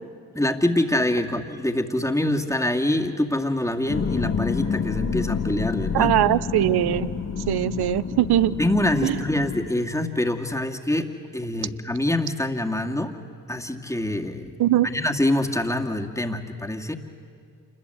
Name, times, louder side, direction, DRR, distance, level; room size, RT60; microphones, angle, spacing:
voice 1, 0.3-6.2 8.6-13.2 13.5-14.5 14.8-16.9, left 1 dB, 5° left, 2 dB, 2.2 m, -25 dB
sound 1, 3.9-9.7, left 6 dB, 40° left, 1.4 m, -28 dB
voice 2, 5.9-7.1 7.5-8.5 9.0-9.2 14.6-14.9, right 13 dB, 70° right, 17 dB, 0.8 m, -21 dB
27.5 x 21.0 x 8.1 m, 2.2 s
hypercardioid pair, 40°, 40 cm